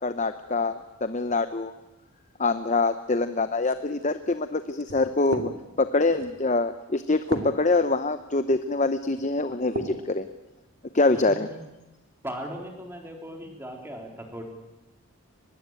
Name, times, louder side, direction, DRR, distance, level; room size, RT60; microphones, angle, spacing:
voice 1, 0.0-1.7 2.4-5.5 5.8-10.3 10.9-11.5, left 3 dB, 30° left, 11 dB, 0.8 m, -25 dB
sound 1, 3.6-10.1 10.6-11.3, right 1 dB, 60° right, 2.9 m, -38 dB
voice 2, 11.1-11.6 12.2-14.4, right 1 dB, 10° right, 2 dB, 3.8 m, -38 dB
24.0 x 21.0 x 9.1 m, 1.0 s
head